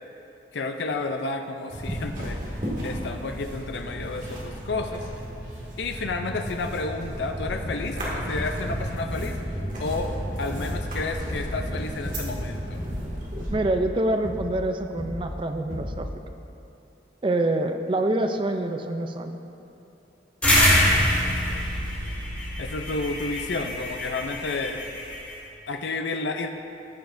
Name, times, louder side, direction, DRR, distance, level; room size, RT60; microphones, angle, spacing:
voice 1, 0.5-5.0 5.8-10.1 10.4-12.8 20.5-21.6 22.1-22.2 22.6-24.9 25.7-26.5, left 3 dB, 70° left, 5 dB, 0.5 m, -31 dB
sound 1, 1.7-13.5, equal, 45° right, 2.1 m, -33 dB
sound 2, 7.7-8.0 8.4-8.8 9.1-9.5 9.9-10.2 10.6-11.0 11.3-11.7 12.0-12.4 12.8-13.2 13.5-13.9 14.2-14.6 15.0-15.3 15.7-16.1, left 1 dB, 40° left, 1.5 m, -35 dB
voice 2, 13.5-16.1 17.2-19.4, right 1 dB, 30° right, 6 dB, 0.4 m, -26 dB
sound 3, 20.4-25.3, left 1 dB, 10° left, 2.2 m, -24 dB
15.0 x 7.0 x 2.6 m, 2.8 s
head